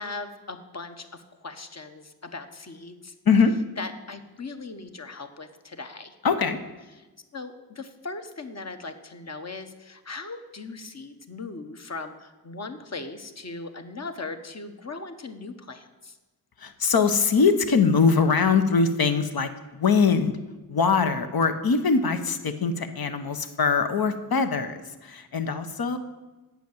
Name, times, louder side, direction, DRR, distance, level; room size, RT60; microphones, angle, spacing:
voice 1, 0.0-3.1 3.8-6.2 7.3-16.2, left 3 dB, 40° left, 7 dB, 1.0 m, -39 dB
voice 2, 6.2-6.6 16.6-20.3 20.7-26.0, left 5 dB, 65° left, 8 dB, 1.0 m, -22 dB
8.2 x 5.8 x 7.8 m, 1.2 s
cardioid pair, 45°, 39 cm